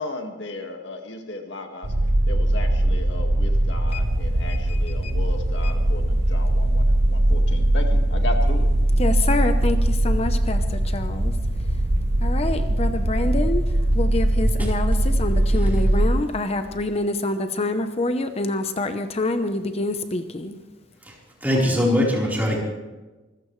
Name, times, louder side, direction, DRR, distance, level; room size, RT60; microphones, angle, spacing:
voice 1, 0.0-1.9 2.3-8.7, left 2 dB, 65° left, 4 dB, 1.9 m, -35 dB
sound 1, 1.8-16.1, right 1 dB, 60° right, 1.2 m, -21 dB
voice 2, 4.5-5.1 5.6-5.7 9.0-11.4 12.2-20.6, left 2 dB, 35° left, 8 dB, 0.8 m, -27 dB
voice 3, 21.4-22.6, left 1 dB, 10° right, -3 dB, 4.1 m, -21 dB
25.0 x 15.0 x 3.2 m, 1.2 s
head